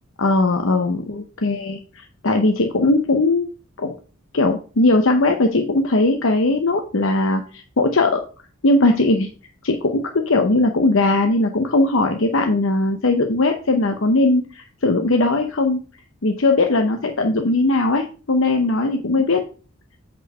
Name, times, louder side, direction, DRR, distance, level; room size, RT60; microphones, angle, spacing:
voice 1, 0.2-3.5 3.8-3.9 4.3-8.2 8.6-9.3 9.6-15.8 16.2-19.4, left 2 dB, 65° left, 5 dB, 0.8 m, -19 dB
8.3 x 4.5 x 5.4 m, 0.38 s
head